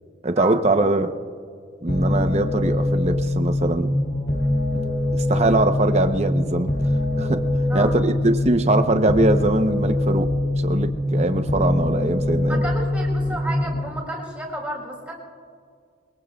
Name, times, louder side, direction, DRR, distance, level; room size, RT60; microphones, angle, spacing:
voice 1, 0.2-1.1 1.8-4.0 4.7-4.8 5.1-6.7 7.2-7.4 7.7-10.3 10.6-12.6, right 2 dB, 35° right, 8 dB, 0.7 m, -22 dB
sound 1, 1.9-13.9, left 1 dB, 70° left, 2.4 m, -23 dB
voice 2, 12.4-15.1, right 1 dB, 5° right, -3 dB, 4.1 m, -32 dB
22.5 x 22.5 x 2.3 m, 2.1 s
head